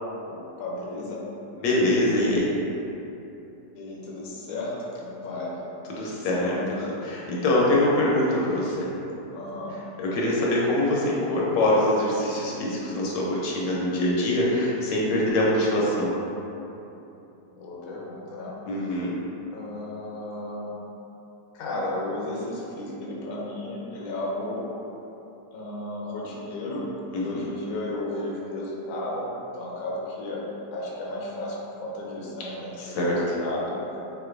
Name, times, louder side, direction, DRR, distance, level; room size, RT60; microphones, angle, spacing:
voice 1, 0.3-1.2 3.7-5.6 6.3-6.8 7.9-8.0 9.3-9.7 17.5-18.6 19.5-20.7 21.5-24.7 25.5-29.3 29.5-30.4 30.7-33.8, left 1 dB, 60° left, -4 dB, 1.0 m, -34 dB
voice 2, 1.6-2.5 5.9-8.9 10.0-16.2 18.7-19.1 27.1-27.5 32.8-33.2, left 1 dB, 80° left, -4 dB, 1.4 m, -24 dB
5.8 x 2.6 x 2.5 m, 3.0 s
omnidirectional pair, 1.9 m